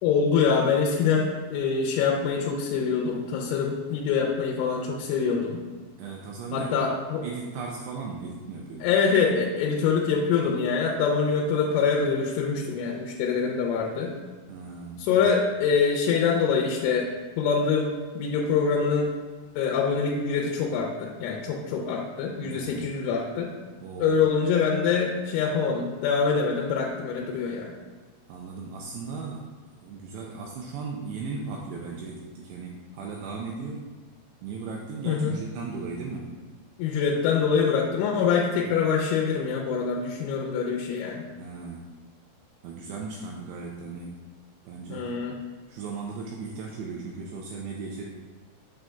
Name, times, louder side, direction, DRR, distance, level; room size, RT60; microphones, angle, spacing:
voice 1, 0.0-5.6 6.5-7.2 8.8-14.1 15.0-17.1 17.4-19.1 19.6-23.5 24.0-27.7 35.1-35.4 36.8-41.2 44.9-45.3, left 6 dB, 90° left, -1 dB, 3.1 m, -25 dB
voice 2, 6.0-6.9 7.2-8.9 14.5-15.2 22.5-22.9 23.8-24.2 28.3-29.6 29.8-33.9 34.4-36.4 41.4-41.9 42.6-44.3 44.7-45.1 45.7-48.0, right 4 dB, 85° right, -1 dB, 2.4 m, -37 dB
7.1 x 6.1 x 2.2 m, 1.4 s
omnidirectional pair, 5.4 m